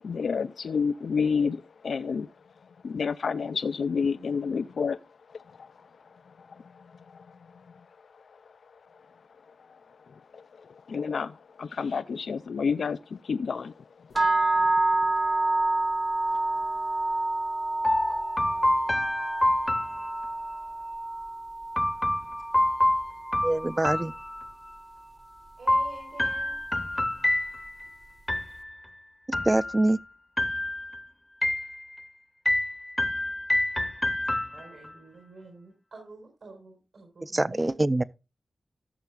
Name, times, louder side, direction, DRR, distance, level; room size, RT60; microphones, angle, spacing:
voice 1, 0.0-2.3 2.6-5.0 5.3-9.2 9.5-15.1, left 5 dB, 80° left, 0.3 m, -32 dB
sound 1, 14.1-24.2, right 2 dB, 35° right, 0.8 m, -28 dB
sound 2, 17.8-20.6 21.8-24.8 25.7-27.9 28.3-28.9 29.3-30.0 30.4-31.0 31.4-32.1 32.5-34.9, left 1 dB, 15° left, 0.7 m, -28 dB
voice 2, 23.4-24.1 29.4-30.0 37.2-38.0, right 2 dB, 20° right, 0.4 m, -24 dB
voice 3, 25.6-26.6 34.5-38.1, right 3 dB, 85° right, 4.4 m, -48 dB
15.5 x 6.8 x 2.3 m
wide cardioid pair, 125°, 0 cm